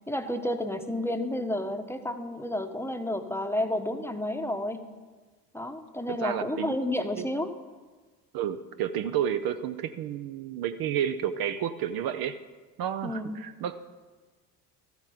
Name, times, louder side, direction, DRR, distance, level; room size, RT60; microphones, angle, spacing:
voice 1, 0.1-4.8 5.5-7.5 13.0-13.4, left 1 dB, 5° left, 6 dB, 1.0 m, -31 dB
voice 2, 6.1-6.7 7.2-7.3 8.3-12.4 12.8-13.8, right 9 dB, 50° right, 10 dB, 0.7 m, -31 dB
13.0 x 8.2 x 5.0 m, 1.3 s
hypercardioid pair, 65°, 47 cm